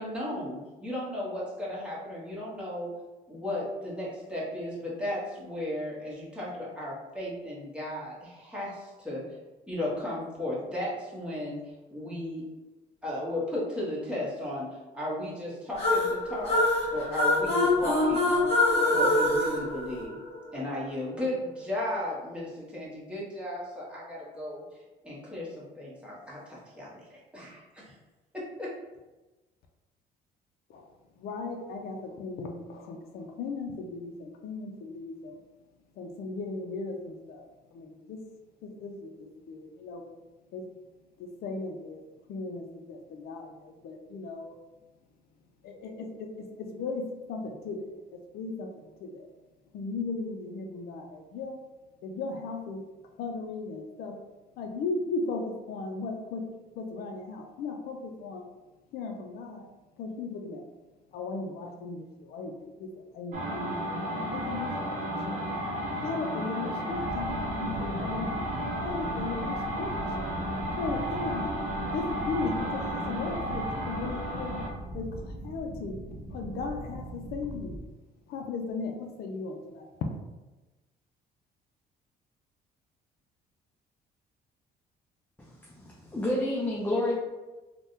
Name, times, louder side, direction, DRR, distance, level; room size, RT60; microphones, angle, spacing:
voice 1, 0.0-2.9 3.3-9.2 9.7-12.5 13.0-16.6 16.9-18.3 18.9-20.2 20.5-24.6 25.0-28.0 28.3-28.7, left 1 dB, 5° right, -7 dB, 1.1 m, -35 dB
sound 1, 15.8-20.5, left 2 dB, 35° left, 1.4 m, -25 dB
voice 2, 31.2-35.4 36.0-37.5 37.7-38.2 38.6-40.1 40.5-40.7 41.2-44.6 45.6-48.7 49.0-49.3 49.7-51.6 52.0-52.8 53.2-54.2 54.6-56.5 56.8-58.5 58.9-59.7 60.0-60.6 61.1-65.4 66.0-68.4 68.8-70.3 70.8-74.6 74.9-76.0 76.3-77.8 78.3-80.1, left 3 dB, 65° left, 3 dB, 0.4 m, -37 dB
sound 2, 63.3-74.8, equal, 50° right, 0.7 m, -33 dB
sound 3, 66.9-77.8, right 1 dB, 85° right, 0.7 m, -40 dB
voice 3, 85.4-87.2, left 1 dB, 10° left, -4 dB, 0.5 m, -30 dB
3.4 x 2.2 x 2.7 m, 1.1 s
cardioid pair, 110°, 17 cm